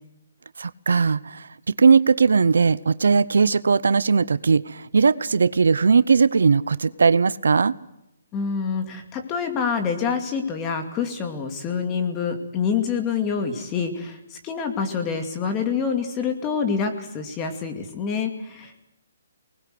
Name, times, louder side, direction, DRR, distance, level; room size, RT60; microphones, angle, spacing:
voice 1, 0.6-7.7, right 5 dB, 80° right, 18 dB, 0.8 m, -19 dB
voice 2, 8.3-18.9, left 6 dB, 20° left, 5 dB, 2.4 m, -26 dB
23.5 x 20.0 x 7.9 m, 0.83 s
hypercardioid pair, 160°, 0 cm